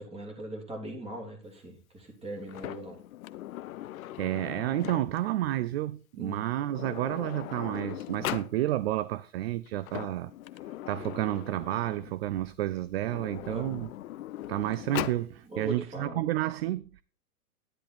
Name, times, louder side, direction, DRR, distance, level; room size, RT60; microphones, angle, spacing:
voice 1, 0.0-3.0 6.2-6.4 13.5-13.9 15.4-16.2, right 1 dB, 15° right, 3.2 m, -40 dB
Sliding door, 2.5-5.3 6.3-6.4 6.7-8.5 9.7-12.2 13.0-15.3, left 14 dB, 65° left, 0.8 m, -39 dB
voice 2, 4.2-10.3 10.9-13.9 14.5-17.0, right 14 dB, 45° right, 0.4 m, -30 dB
10.5 x 10.0 x 4.3 m
hypercardioid pair, 135°, 44 cm